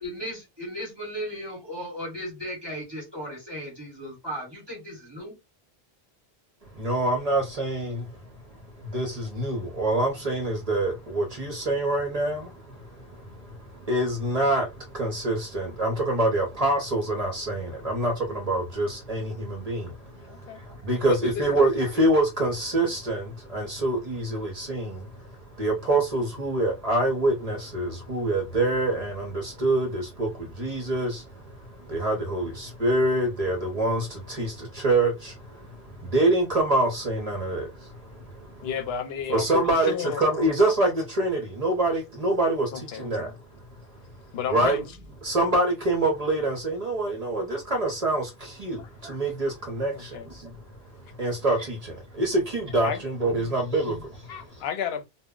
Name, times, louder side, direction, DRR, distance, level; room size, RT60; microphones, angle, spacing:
voice 1, 0.0-5.3, equal, 25° right, 1.0 m, -36 dB
voice 2, 6.7-8.2 8.8-38.7 39.3-43.3 44.5-44.8 45.2-50.8 51.2-54.3, right 2 dB, 45° right, 0.7 m, -26 dB
voice 3, 20.3-20.6 21.0-21.4 38.6-40.3 42.7-43.1 44.3-44.8 48.8-48.9 49.9-50.3 52.8-53.0 53.4-53.6 54.3-55.0, left 8 dB, 80° left, 0.8 m, -32 dB
2.1 x 2.0 x 3.6 m
omnidirectional pair, 1.0 m